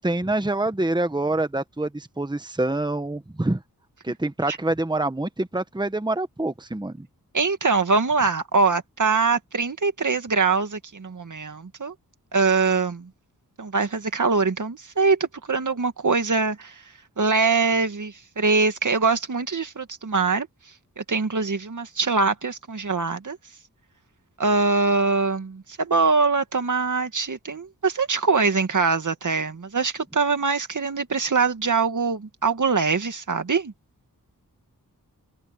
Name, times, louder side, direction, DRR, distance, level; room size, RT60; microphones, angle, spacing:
voice 1, 0.0-3.6 4.0-7.1, right 2 dB, 10° right, 1.4 m, -26 dB
voice 2, 7.3-11.9 12.3-13.1 13.6-16.8 17.2-20.5 21.0-23.4 24.4-33.7, right 4 dB, 55° right, 2.2 m, -23 dB
cardioid pair, 50°, 36 cm